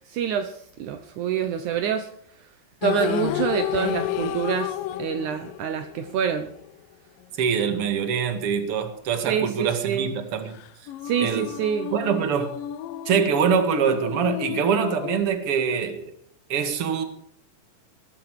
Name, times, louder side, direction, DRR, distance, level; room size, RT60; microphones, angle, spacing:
voice 1, 0.1-2.1 2.8-6.5 9.3-10.1 11.0-11.9, right 8 dB, 80° right, 1.7 m, -26 dB
sound 1, 2.8-6.7 10.5-15.2, left 12 dB, 80° left, 2.0 m, -31 dB
voice 2, 7.4-10.6 11.2-11.5 11.9-12.5 13.1-16.1 16.5-17.0, right 7 dB, 45° right, 2.0 m, -24 dB
19.5 x 13.5 x 4.8 m
omnidirectional pair, 4.8 m